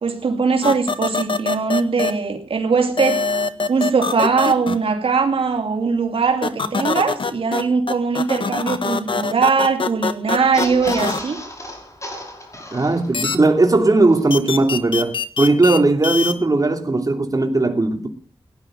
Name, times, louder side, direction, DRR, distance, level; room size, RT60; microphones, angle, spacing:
voice 1, 0.0-3.2 3.7-11.4, right 5 dB, 90° right, 2.7 m, -20 dB
sound 1, 0.6-2.1 3.0-4.8 6.4-7.6 7.9-11.2 13.1-13.4 14.3-16.3, left 4 dB, 70° left, 1.5 m, -23 dB
sound 2, 10.4-13.4 13.8-13.9 14.1-14.2, left 1 dB, 35° left, 5.4 m, -33 dB
voice 2, 12.7-18.1, right 2 dB, 40° right, 2.9 m, -17 dB
18.0 x 10.5 x 7.8 m
wide cardioid pair, 75°, 9 cm